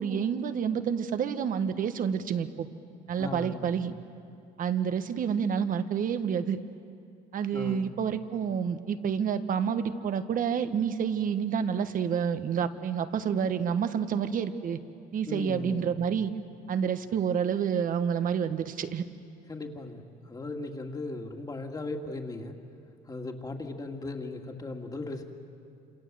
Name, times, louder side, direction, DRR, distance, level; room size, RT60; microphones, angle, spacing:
voice 1, 0.0-2.7 3.1-3.9 4.6-6.6 7.3-14.8 15.1-16.3 16.7-19.0, right 7 dB, 55° right, 10 dB, 1.4 m, -29 dB
voice 2, 3.1-3.7 7.5-7.9 15.3-16.0 19.5-22.5 23.1-25.2, left 2 dB, 20° left, 3 dB, 2.4 m, -37 dB
28.0 x 27.0 x 7.7 m, 2.5 s
cardioid pair, 110°, 17 cm